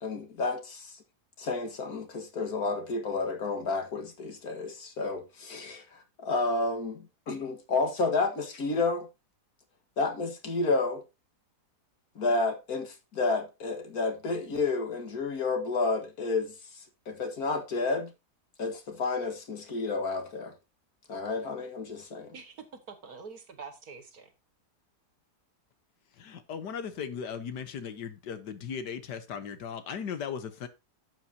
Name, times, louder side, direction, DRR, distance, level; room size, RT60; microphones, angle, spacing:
voice 1, 0.0-1.0 1.4-9.1 10.0-11.0 12.2-18.1 18.6-20.5 21.1-22.3, left 3 dB, 65° left, 2.2 m, -31 dB
voice 2, 22.3-24.3, right 5 dB, 65° right, 2.2 m, -45 dB
voice 3, 26.2-30.7, left 7 dB, 90° left, 1.7 m, -37 dB
12.0 x 7.7 x 2.8 m
omnidirectional pair, 1.7 m